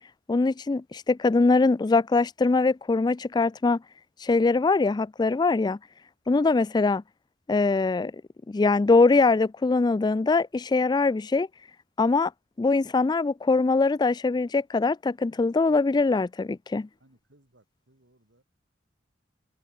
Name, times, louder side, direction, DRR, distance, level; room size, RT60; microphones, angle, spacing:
voice 1, 0.3-3.8 4.2-5.8 6.3-7.0 7.5-8.1 8.5-11.5 12.0-12.3 12.6-16.9, left 3 dB, 20° left, 0.3 m, -22 dB
voice 2, 17.0-18.4, right 1 dB, 70° right, 3.3 m, -63 dB
head